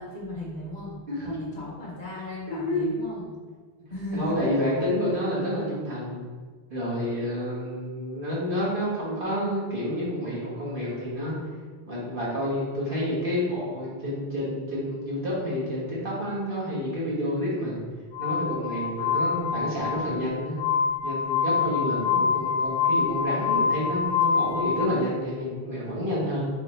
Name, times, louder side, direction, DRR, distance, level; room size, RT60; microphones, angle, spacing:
voice 1, 0.0-3.3 3.9-4.5 22.1-22.5, left 1 dB, 50° left, -5 dB, 1.0 m, -36 dB
voice 2, 1.1-1.4 2.5-2.9 4.1-6.2 6.7-11.3 11.9-17.8 18.2-20.6 21.0-26.4, equal, 50° right, -7 dB, 1.5 m, -29 dB
Glass, 18.1-24.9, left 6 dB, 75° left, 0.8 m, -26 dB
4.0 x 3.7 x 3.1 m, 1.5 s
omnidirectional pair, 1.1 m